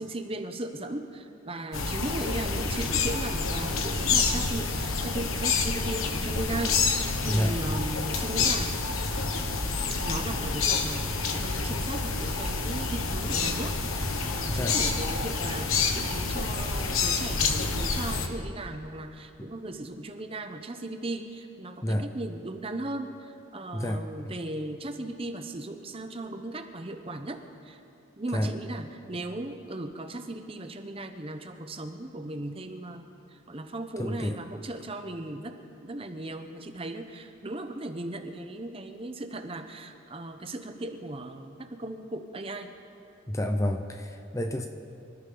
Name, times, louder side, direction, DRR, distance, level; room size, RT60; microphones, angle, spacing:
voice 1, 0.0-8.8 10.0-13.8 14.2-27.8 28.2-33.0 33.3-35.6 35.8-42.7, right 2 dB, 25° right, 7 dB, 0.8 m, -37 dB
sound 1, 1.7-18.3, left 4 dB, 80° left, 1.3 m, -28 dB
voice 2, 7.2-7.5 14.5-14.8 19.4-19.5 21.8-22.1 23.7-24.3 28.3-28.5 34.0-34.4 43.3-44.7, equal, 15° left, 5 dB, 0.6 m, -29 dB
26.0 x 13.5 x 3.9 m, 2.8 s
head